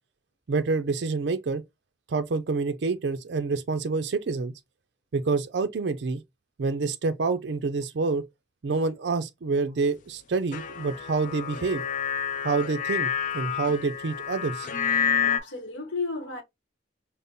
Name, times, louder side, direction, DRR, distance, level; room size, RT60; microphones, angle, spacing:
voice 1, 0.5-1.6 2.1-4.5 5.1-6.2 6.6-8.2 8.6-11.8 12.4-14.7, right 4 dB, 65° right, 0.4 m, -27 dB
sound 1, 10.5-15.4, left 7 dB, 45° left, 0.4 m, -29 dB
voice 2, 15.2-16.4, left 4 dB, 85° left, 0.9 m, -33 dB
5.1 x 2.0 x 2.6 m
head